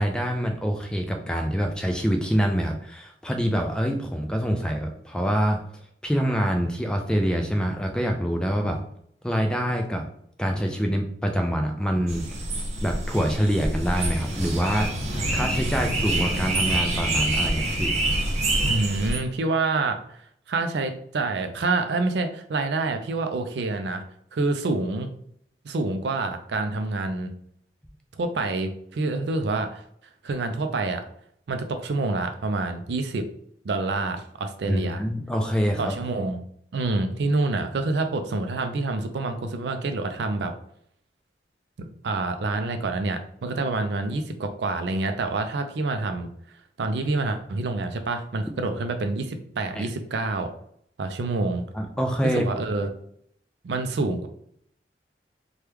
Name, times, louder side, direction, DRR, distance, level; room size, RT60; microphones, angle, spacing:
voice 1, 0.0-5.6 6.0-8.8 9.2-10.0 10.4-12.3 12.8-14.9 15.3-18.0 34.6-36.0 49.8-49.9 51.7-52.5, equal, 5° left, 3 dB, 0.3 m, -25 dB
sound 1, 12.1-19.2, right 1 dB, 40° right, 0.6 m, -26 dB
voice 2, 18.6-20.0 20.5-24.0 24.3-25.1 25.6-27.3 28.2-29.8 30.2-31.0 31.5-33.3 33.6-35.0 35.8-36.4 36.7-40.5 41.8-46.3 46.8-50.5 51.0-51.6 52.2-52.9 53.6-54.3, right 3 dB, 75° right, 7 dB, 0.4 m, -27 dB
3.0 x 2.3 x 3.4 m, 0.68 s
head